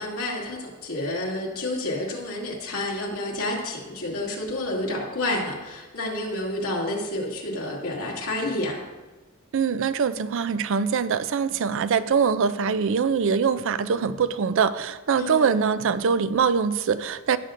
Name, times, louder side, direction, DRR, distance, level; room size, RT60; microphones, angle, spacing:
voice 1, 0.0-8.8 15.2-15.5, left 1 dB, 80° left, -3 dB, 2.4 m, -29 dB
voice 2, 9.5-17.4, right 6 dB, 60° right, 14 dB, 0.4 m, -23 dB
16.5 x 7.5 x 2.5 m, 1.2 s
head